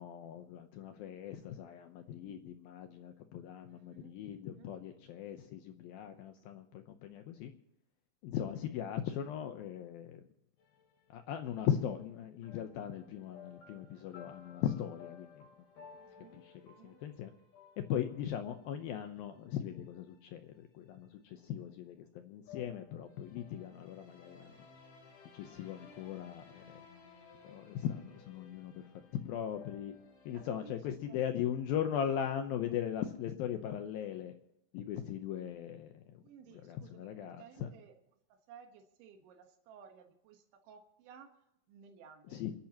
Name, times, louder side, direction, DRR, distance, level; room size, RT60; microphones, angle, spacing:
voice 1, 0.0-7.5 8.2-10.2 11.1-15.5 15.8-15.9 16.4-17.3 17.8-24.7 25.3-26.6 27.4-28.9 29.1-29.9 30.3-34.3 34.7-36.2 36.6-37.7 42.3-42.5, left 9 dB, 85° left, 6 dB, 2.1 m, -39 dB
voice 2, 3.7-4.7 16.0-17.0 30.3-31.3 36.2-38.0 38.3-41.3 41.7-42.4, right 7 dB, 85° right, 4 dB, 3.7 m, -58 dB
sound 1, 10.6-11.6 12.4-20.5 22.5-30.5, left 6 dB, 45° left, 3.6 m, -58 dB
29.0 x 11.5 x 2.9 m, 0.81 s
omnidirectional pair, 5.2 m